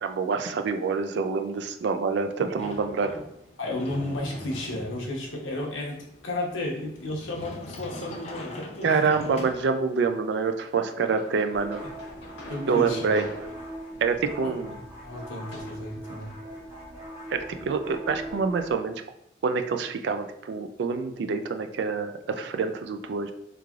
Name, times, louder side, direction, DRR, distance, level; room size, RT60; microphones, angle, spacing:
voice 1, 0.0-3.2 8.8-11.8 12.7-13.3 14.0-14.7 17.3-19.0 19.4-23.3, right 5 dB, 65° right, 8 dB, 0.3 m, -26 dB
Sliding door, 2.6-10.1, left 1 dB, 35° left, 0.5 m, -42 dB
voice 2, 3.6-6.0 6.2-9.4 12.5-13.1 14.4-14.5 15.0-16.3, left 1 dB, 90° left, -1 dB, 0.9 m, -33 dB
sound 1, 9.4-10.0 10.8-15.8, left 1 dB, 70° left, 1.2 m, -47 dB
sound 2, 11.5-18.7, right 1 dB, 10° right, 1.3 m, -40 dB
3.5 x 3.2 x 2.4 m, 0.77 s
head